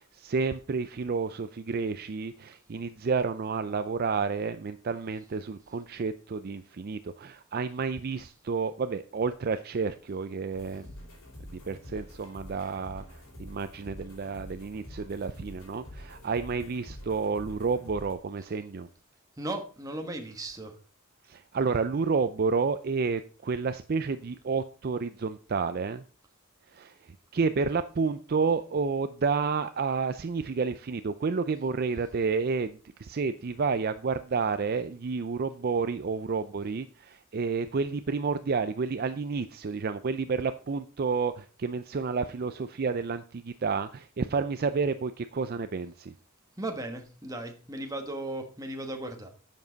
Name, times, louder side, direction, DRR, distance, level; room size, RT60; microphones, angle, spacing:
voice 1, 0.0-10.9 11.5-18.9 21.2-26.0 26.7-46.1, right 4 dB, 45° right, 0.4 m, -30 dB
sound 1, 10.5-18.1, left 1 dB, 80° left, 4.6 m, -46 dB
voice 2, 19.4-20.7 46.6-49.3, right 1 dB, 15° right, 1.4 m, -36 dB
10.5 x 7.3 x 4.0 m
head